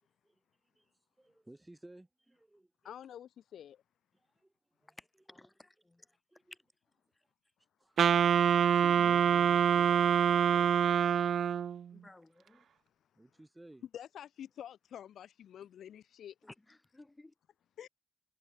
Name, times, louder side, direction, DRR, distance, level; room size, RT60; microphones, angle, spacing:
voice 1, 1.2-2.7 4.1-4.5 4.8-5.0 6.3-6.5 7.8-8.0 13.2-13.8, right 1 dB, 10° right, 3.5 m, -56 dB
voice 2, 2.8-3.8 13.9-16.3 17.8-17.9, left 10 dB, 65° left, 1.1 m, -48 dB
voice 3, 5.0-6.1 6.5-6.6 11.9-12.7 16.4-17.3, left 2 dB, 15° left, 2.2 m, -56 dB
Wind instrument woodwind instrument, 8.0-11.8, right 8 dB, 55° right, 0.3 m, -26 dB
cardioid pair, 90°, 0 cm